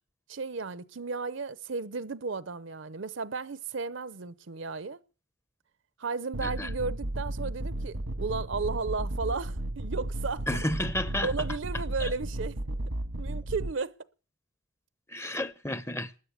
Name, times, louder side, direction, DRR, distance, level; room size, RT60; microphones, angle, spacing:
voice 1, 0.3-5.0 6.0-10.5 11.2-12.6 13.2-13.9, right 4 dB, 60° right, 0.7 m, -34 dB
sound 1, 6.3-13.7, right 1 dB, 90° right, 1.5 m, -34 dB
voice 2, 10.5-11.3 12.0-12.1 15.1-16.1, left 1 dB, 10° left, 0.6 m, -32 dB
13.0 x 9.9 x 8.4 m
head